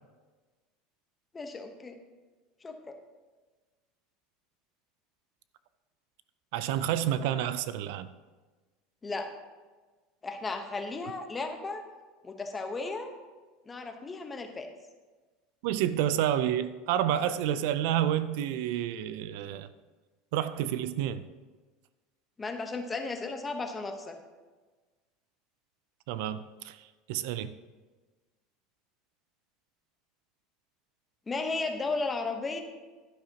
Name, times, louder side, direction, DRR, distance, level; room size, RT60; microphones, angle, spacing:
voice 1, 1.3-2.0 2.6-3.0 9.0-9.3 10.2-11.8 12.2-13.1 13.7-14.7 22.4-24.2 31.3-32.6, left 3 dB, 15° left, 5 dB, 1.0 m, -34 dB
voice 2, 6.5-8.1 15.6-19.7 20.3-21.2 26.1-27.5, right 11 dB, 70° right, 13 dB, 0.4 m, -29 dB
11.5 x 10.5 x 2.9 m, 1.3 s
supercardioid pair, 150°, 0 cm